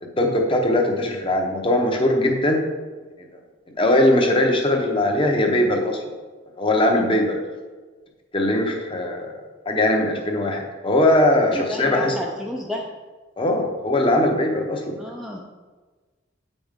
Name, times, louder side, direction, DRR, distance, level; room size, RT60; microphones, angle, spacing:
voice 1, 0.0-2.6 3.8-6.1 6.6-7.4 8.3-9.3 9.7-12.2 13.4-14.9, left 1 dB, 25° left, 2 dB, 0.9 m, -20 dB
voice 2, 11.5-12.9 14.9-15.4, left 1 dB, ahead, -1 dB, 0.5 m, -30 dB
8.3 x 5.2 x 3.6 m, 1.4 s
head